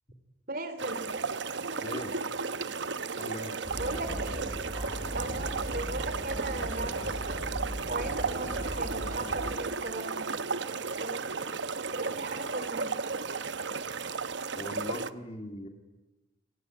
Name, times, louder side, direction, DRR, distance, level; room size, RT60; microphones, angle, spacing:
voice 1, 0.5-1.1 3.2-3.3 3.7-4.5 5.1-7.4 7.9-10.3 11.0-11.2 11.9-12.9, right 2 dB, 50° right, 10 dB, 3.5 m, -37 dB
sound 1, 0.8-15.1, right 4 dB, 70° right, 0.9 m, -34 dB
voice 2, 1.8-2.1 3.2-3.5 14.5-15.7, left 1 dB, 35° left, 5 dB, 3.0 m, -39 dB
sound 2, 3.6-9.6, equal, 25° right, 6.0 m, -38 dB
28.0 x 22.0 x 9.7 m, 1.1 s
head